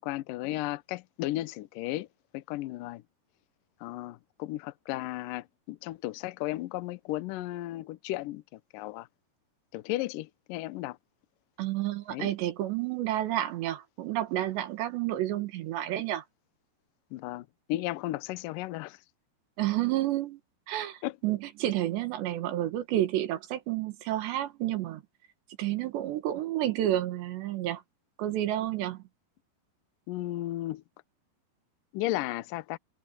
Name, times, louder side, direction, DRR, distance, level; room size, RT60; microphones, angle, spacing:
voice 1, 0.0-2.1 2.3-3.0 3.8-9.1 9.7-11.0 12.1-12.3 17.1-19.0 21.0-21.2 30.1-30.8 31.9-32.8, left 16 dB, 80° left, 2.0 m, -34 dB
voice 2, 11.6-16.2 19.6-20.4 20.7-25.0 25.6-27.8 28.2-29.0, right 13 dB, 85° right, 3.8 m, -30 dB
omnidirectional pair, 4.9 m